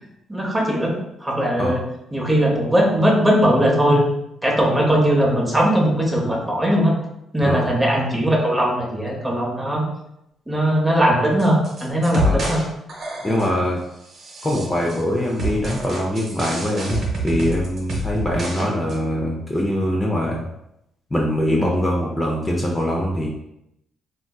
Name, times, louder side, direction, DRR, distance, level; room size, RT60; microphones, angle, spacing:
voice 1, 0.3-0.9 1.2-1.8 2.1-4.0 4.4-6.9 7.3-9.9 10.5-12.6, equal, 15° right, -1 dB, 0.8 m, -19 dB
sound 1, 11.4-12.6 12.9-13.6 14.1-15.0 15.4-18.6 18.9-19.0, right 1 dB, 55° right, 0.8 m, -27 dB
voice 2, 13.2-13.8 14.4-20.5 21.1-23.3, left 1 dB, 15° left, -2 dB, 0.5 m, -23 dB
3.4 x 2.5 x 2.3 m, 0.82 s
cardioid pair, 90°, 0 cm